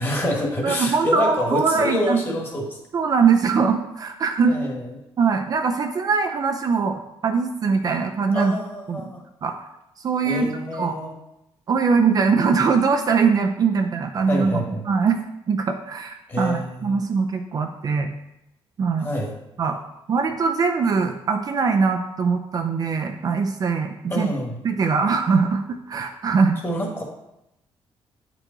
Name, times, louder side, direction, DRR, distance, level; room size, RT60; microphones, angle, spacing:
voice 1, 0.0-2.8 4.5-4.8 8.3-9.2 10.2-11.1 14.3-14.8 16.3-17.0 19.0-19.3 24.1-24.6 26.6-27.0, left 1 dB, 25° left, -1 dB, 1.6 m, -26 dB
voice 2, 0.6-2.2 2.9-4.5 5.2-8.6 8.9-9.0 9.4-9.6 10.0-11.0 11.7-15.2 15.5-18.1 18.8-19.1 19.6-19.8 20.1-24.3 24.6-26.6, right 5 dB, 40° right, 4 dB, 0.5 m, -22 dB
8.7 x 4.6 x 3.9 m, 0.87 s
cardioid pair, 155°, 10 cm